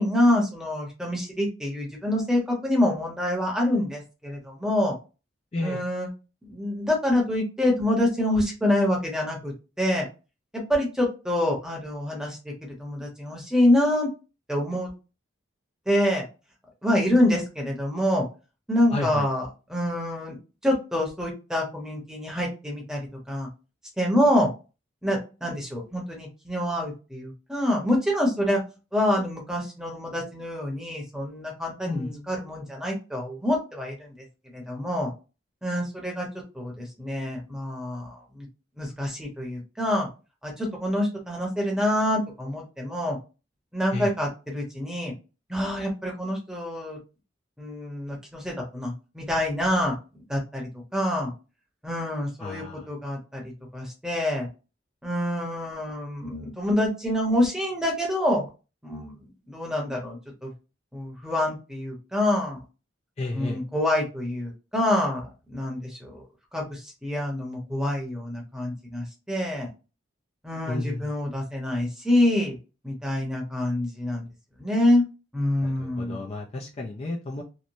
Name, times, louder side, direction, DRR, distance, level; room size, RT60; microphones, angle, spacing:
voice 1, 0.0-4.9 5.6-6.1 6.4-10.1 10.5-14.1 14.5-14.9 15.9-16.2 16.8-18.2 18.7-20.4 20.6-23.5 24.0-24.5 25.0-28.6 28.9-34.1 34.5-35.1 35.6-36.3 36.5-38.5 38.8-40.1 40.4-43.2 43.7-45.1 45.5-47.0 47.6-51.3 51.8-54.5 55.0-58.5 58.8-59.1 59.5-60.5 60.9-62.6 63.3-66.2 66.5-69.7 70.4-72.6 72.8-74.3 74.6-75.0 75.3-76.2, left 1 dB, 5° right, -1 dB, 0.8 m, -26 dB
voice 2, 5.5-5.8 18.9-19.2 31.9-32.3 43.9-44.1 52.4-52.9 63.2-63.6 70.7-71.0 75.6-77.4, left 2 dB, 30° left, -1 dB, 0.4 m, -32 dB
3.0 x 2.1 x 2.6 m, 0.30 s
head